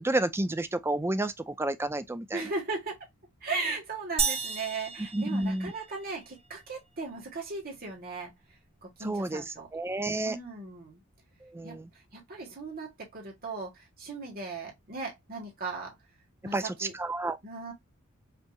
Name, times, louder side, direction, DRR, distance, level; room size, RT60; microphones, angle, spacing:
voice 1, 0.0-2.4 5.1-5.7 9.0-10.4 11.4-11.9 16.5-17.4, right 2 dB, 10° right, 0.4 m, -30 dB
voice 2, 2.3-3.0 3.4-8.3 8.8-9.7 10.2-11.0 11.6-15.9 16.4-16.9 17.4-17.7, right 3 dB, 40° right, 1.5 m, -37 dB
sound 1, 4.2-6.1, right 5 dB, 25° right, 1.0 m, -32 dB
5.3 x 2.9 x 2.3 m
head